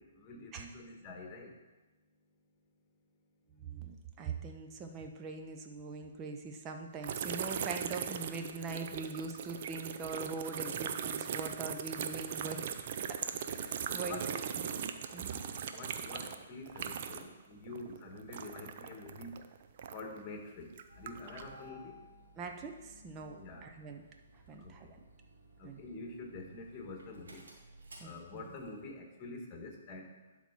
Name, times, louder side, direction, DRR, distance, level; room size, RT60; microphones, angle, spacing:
voice 1, 0.0-1.6 13.8-14.2 15.4-19.4 19.9-22.0 23.3-23.7 24.6-25.0 25.6-27.5 28.0-30.1, left 2 dB, 30° left, 1 dB, 1.9 m, -47 dB
voice 2, 3.5-13.2 13.5-14.2 15.1-15.4 22.4-24.0 24.5-24.9 25.6-25.8 28.0-28.5, right 4 dB, 25° right, 4 dB, 1.0 m, -43 dB
sound 1, 7.0-17.4 17.7-20.2 20.7-21.5, right 8 dB, 50° right, 0.6 m, -39 dB
Engine starting, 20.9-28.8, equal, 80° right, 2.3 m, -58 dB
11.5 x 4.5 x 4.5 m, 1.1 s
hypercardioid pair, 135°, 0 cm